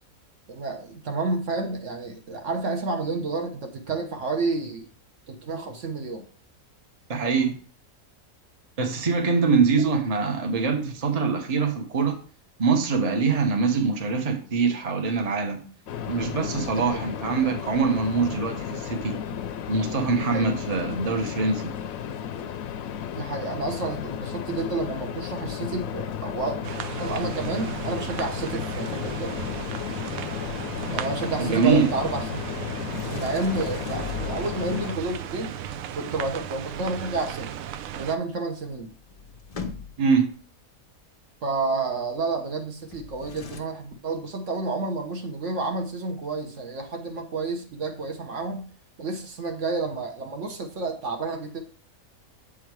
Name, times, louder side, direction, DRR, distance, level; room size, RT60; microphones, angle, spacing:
voice 1, 0.5-4.9 5.3-6.2 9.8-9.9 16.7-17.0 20.2-20.5 23.1-26.6 27.0-29.4 30.9-32.5 33.1-35.5 36.0-37.5 37.9-38.9 41.4-48.7 49.0-51.6, right 3 dB, 60° right, 4 dB, 1.3 m, -30 dB
voice 2, 7.1-7.5 8.8-12.2 12.6-15.6 16.1-19.2 19.7-21.7 31.4-31.9 40.0-40.3, right 4 dB, 30° right, 4 dB, 0.9 m, -23 dB
sound 1, 15.9-34.9, left 9 dB, 80° left, 1.0 m, -33 dB
sound 2, 26.6-38.2, right 10 dB, 80° right, 1.0 m, -36 dB
Sliding door, 32.9-34.8 38.4-38.5 38.6-40.2 42.8-43.6, left 5 dB, 50° left, 0.4 m, -39 dB
7.8 x 3.7 x 4.6 m, 0.42 s
omnidirectional pair, 1.5 m